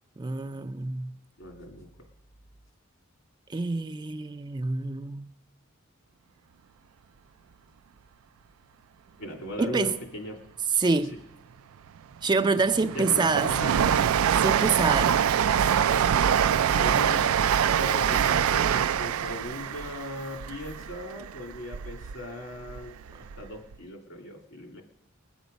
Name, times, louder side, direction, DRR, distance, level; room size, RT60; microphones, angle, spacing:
voice 1, 0.2-1.1 3.5-5.3 9.6-9.9 10.8-11.2 12.2-13.5 14.4-15.2, right 4 dB, 20° right, 0.4 m, -26 dB
voice 2, 1.4-1.9 9.2-10.4 12.9-13.7 16.8-17.2 17.8-24.8, left 1 dB, 65° left, 2.6 m, -38 dB
Train, 12.0-22.1 22.5-23.5 23.7-23.8, right 8 dB, 90° right, 0.4 m, -25 dB
21.0 x 8.0 x 5.2 m
head